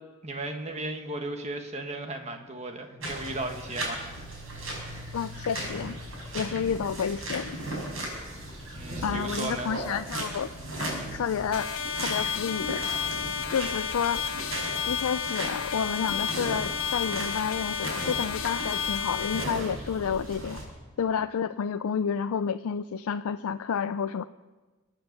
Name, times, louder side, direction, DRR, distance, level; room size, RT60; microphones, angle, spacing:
voice 1, 0.2-4.0 8.7-9.7, right 2 dB, 30° right, 5 dB, 1.5 m, -35 dB
sound 1, 3.0-20.6, right 1 dB, 70° right, 5.7 m, -37 dB
voice 2, 5.1-6.0 6.3-7.6 9.0-10.5 10.8-11.7 12.0-12.8 13.5-14.2 14.9-20.6 21.0-24.2, left 7 dB, 90° left, 11 dB, 0.4 m, -30 dB
sound 2, 11.5-19.4, left 7 dB, 70° left, 1.2 m, -32 dB
24.0 x 9.1 x 6.7 m, 1.3 s
head